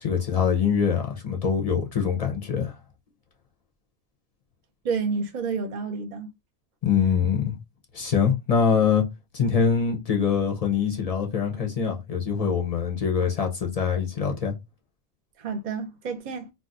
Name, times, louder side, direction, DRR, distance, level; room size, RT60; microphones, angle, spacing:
voice 1, 0.0-2.8 6.8-7.6 7.9-9.1 9.3-14.5, left 6 dB, 45° left, 0.5 m, -24 dB
voice 2, 4.8-6.3 15.4-16.5, right 5 dB, 45° right, 0.6 m, -29 dB
2.5 x 2.2 x 3.7 m
omnidirectional pair, 1.4 m